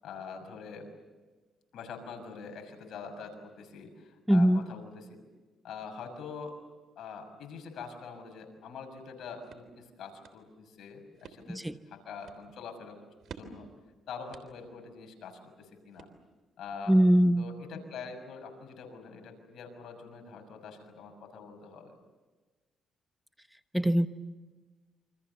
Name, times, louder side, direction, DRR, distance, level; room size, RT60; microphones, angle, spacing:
voice 1, 0.0-0.9 1.7-5.2 5.6-6.6 7.0-13.1 13.3-13.7 14.1-16.1 16.6-17.0 17.4-21.9, left 5 dB, 70° left, 5 dB, 6.4 m, -44 dB
voice 2, 4.3-4.6 11.5-11.7 16.9-17.4 23.7-24.1, equal, 5° right, 10 dB, 1.0 m, -22 dB
sound 1, 9.0-16.6, right 6 dB, 65° right, 3.4 m, -54 dB
28.5 x 26.0 x 7.0 m, 1.3 s
cardioid pair, 90°, 0 cm